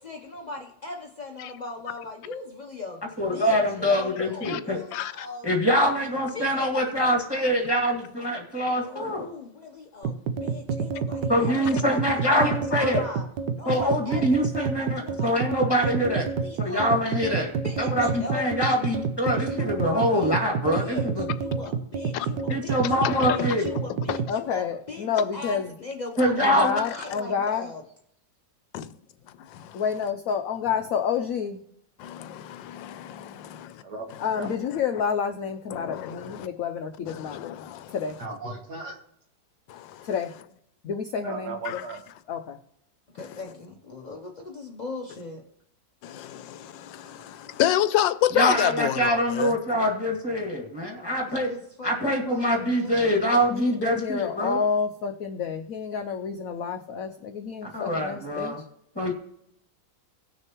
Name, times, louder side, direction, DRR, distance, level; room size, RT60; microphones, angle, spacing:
voice 1, 0.0-3.0 3.3-5.5 6.3-6.7 8.7-13.2 13.5-16.9 17.6-18.5 19.4-27.8 43.1-45.4 51.2-52.9, left 3 dB, 45° left, 0.5 m, -39 dB
voice 2, 3.2-4.8 5.4-9.2 11.3-13.1 13.7-16.3 16.6-21.2 22.5-23.7 26.2-26.8 48.3-51.5 51.8-54.6 57.6-58.6 59.0-59.1, equal, 15° left, 1.9 m, -24 dB
voice 3, 4.9-5.3 22.1-22.3 23.0-23.3 24.1-24.2 28.7-28.8 29.5-29.8 32.0-33.8 35.7-36.5 37.1-37.9 39.7-40.1 41.6-41.8 46.0-49.5, left 12 dB, 85° left, 1.3 m, -29 dB
sound 1, 10.0-24.3, right 5 dB, 80° right, 1.4 m, -29 dB
voice 4, 24.3-25.7 26.4-27.7 29.7-31.6 34.2-37.4 37.9-38.2 40.0-40.3 40.8-41.8 42.3-42.6 53.5-58.6, left 6 dB, 70° left, 0.8 m, -29 dB
voice 5, 33.8-34.5 38.2-39.0 41.2-42.0, right 3 dB, 65° right, 1.9 m, -36 dB
18.0 x 6.4 x 3.0 m
omnidirectional pair, 2.0 m